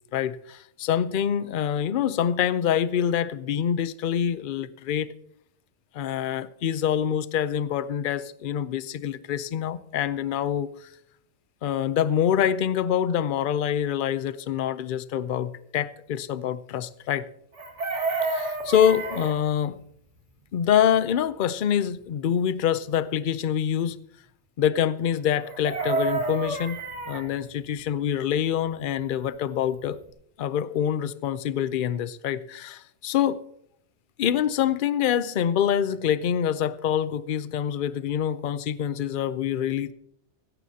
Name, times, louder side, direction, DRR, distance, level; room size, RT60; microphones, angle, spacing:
voice 1, 0.1-5.1 5.9-10.7 11.6-17.2 18.2-19.8 20.5-24.0 24.6-26.8 27.1-30.0 30.4-33.4 34.2-39.9, left 9 dB, 55° left, 16 dB, 0.7 m, -25 dB
Chicken rooster, 17.5-19.4 25.4-27.2 29.5-29.6 29.8-30.1, right 3 dB, 85° right, 2.1 m, -29 dB
16.5 x 14.0 x 2.8 m, 0.72 s
omnidirectional pair, 1.2 m